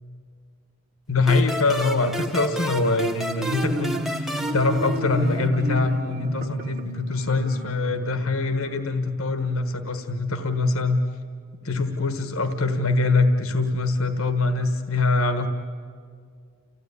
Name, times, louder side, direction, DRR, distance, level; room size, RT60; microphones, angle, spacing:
voice 1, 1.1-11.0 11.6-15.5, left 3 dB, 75° left, 8 dB, 1.4 m, -23 dB
sound 1, 1.3-5.6, equal, ahead, 0.7 m, -32 dB
Marimba xylophone, 3.2-8.8, right 1 dB, 35° right, 1.2 m, -31 dB
29.5 x 15.5 x 9.6 m, 2.1 s
head